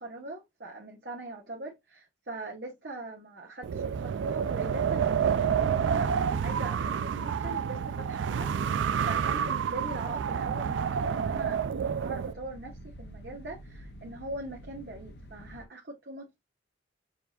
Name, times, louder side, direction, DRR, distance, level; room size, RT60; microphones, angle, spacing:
voice 1, 0.0-8.5 9.0-11.6 12.0-16.4, right 2 dB, 60° right, 1.1 m, -41 dB
Wind, 3.6-12.3, right 7 dB, 90° right, 0.3 m, -29 dB
sound 1, 10.4-15.7, equal, 60° left, 0.6 m, -48 dB
6.8 x 2.7 x 2.3 m
head